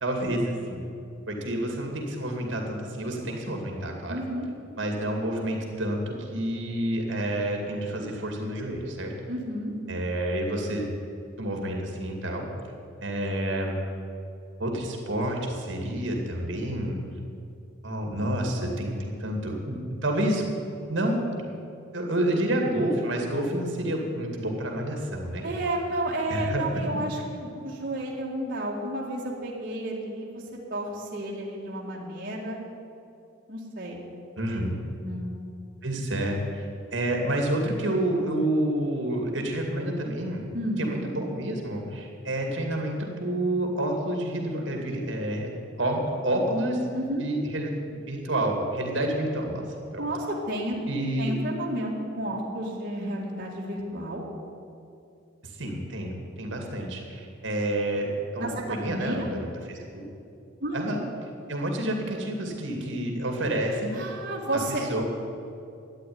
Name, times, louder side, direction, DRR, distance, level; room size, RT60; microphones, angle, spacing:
voice 1, 0.0-0.8 1.3-4.2 4.8-9.1 9.9-10.8 11.4-12.5 13.0-13.8 14.6-17.0 17.8-20.4 20.9-21.2 21.9-25.6 26.3-26.6 34.4-34.8 35.8-40.5 40.8-46.9 47.2-49.6 49.9-50.0 50.9-51.3 55.4-60.1 60.7-61.0 61.5-64.0 64.5-65.0, right 1 dB, 65° right, 1 dB, 2.4 m, -29 dB
voice 2, 4.1-4.5 9.3-9.7 25.4-30.4 30.7-32.6 33.5-34.0 35.0-35.4 40.5-40.8 46.9-47.2 50.0-50.8 51.2-54.2 58.4-59.3 60.6-60.9 63.9-64.9, right 1 dB, 45° right, -4 dB, 2.2 m, -31 dB
13.0 x 9.7 x 9.6 m, 2.6 s
head